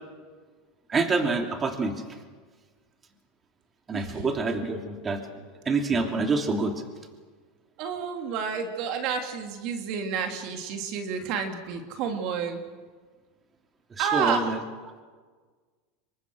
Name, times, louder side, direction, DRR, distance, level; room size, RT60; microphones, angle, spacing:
voice 1, 0.9-2.0 3.9-5.2 5.6-6.7 14.0-14.6, right 3 dB, 25° right, 4 dB, 3.0 m, -26 dB
voice 2, 3.9-4.2 7.8-12.6 14.0-14.5, right 6 dB, 55° right, 5 dB, 2.9 m, -30 dB
27.5 x 24.0 x 6.5 m, 1.5 s
hypercardioid pair, 110°, 0 cm